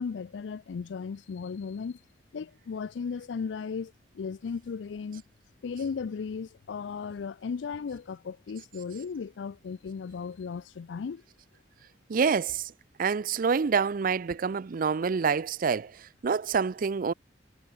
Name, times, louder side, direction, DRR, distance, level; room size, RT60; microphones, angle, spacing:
voice 1, 0.0-2.0 2.3-5.2 5.6-11.2, left 5 dB, 85° left, 0.4 m, -36 dB
voice 2, 12.1-12.7 13.0-17.1, right 5 dB, 50° right, 0.4 m, -27 dB
head